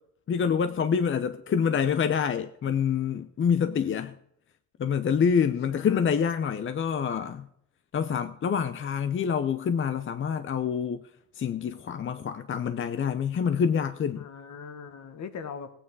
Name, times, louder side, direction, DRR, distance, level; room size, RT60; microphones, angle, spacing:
voice 1, 0.3-4.1 4.8-7.5 7.9-11.0 11.3-14.3, left 7 dB, 40° left, 0.7 m, -26 dB
voice 2, 3.6-4.0 5.7-6.1 14.1-15.7, left 6 dB, 65° left, 1.5 m, -41 dB
16.5 x 8.8 x 4.7 m
cardioid pair, 90°, 30 cm